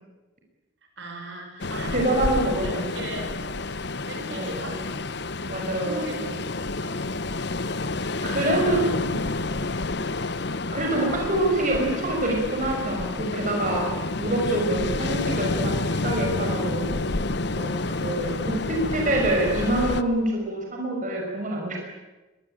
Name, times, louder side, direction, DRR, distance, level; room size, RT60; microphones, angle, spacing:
voice 1, 1.0-3.5 4.1-4.9 5.8-6.3 6.8-7.0 17.8-18.6, right 1 dB, 65° right, 3 dB, 6.2 m, -37 dB
Ocean, 1.6-20.0, left 2 dB, 60° left, 1.0 m, -29 dB
voice 2, 1.9-2.9 4.3-4.8 5.5-6.3 8.2-9.2 10.7-16.9 17.5-17.7 18.0-21.8, right 1 dB, 40° right, 0 dB, 5.8 m, -26 dB
24.0 x 22.0 x 9.0 m, 1.1 s
head